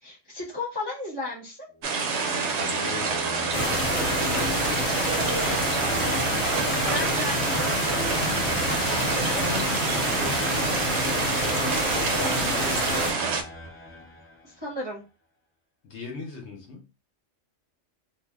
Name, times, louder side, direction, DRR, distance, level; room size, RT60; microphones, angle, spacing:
voice 1, 0.0-1.6 6.6-7.9 14.4-15.0, left 2 dB, 25° right, -5 dB, 0.6 m, -34 dB
sound 1, 1.8-14.6, left 1 dB, 20° left, 0.4 m, -40 dB
sound 2, 1.8-13.4, right 4 dB, 65° right, 0.8 m, -27 dB
voice 2, 2.5-4.6 4.9-6.3 8.8-13.4 15.8-16.8, left 4 dB, 65° left, 1 dB, 1.0 m, -39 dB
sound 3, 3.5-13.1, left 1 dB, 80° left, 1.2 m, -28 dB
2.6 x 2.1 x 3.4 m, 0.31 s
omnidirectional pair, 1.4 m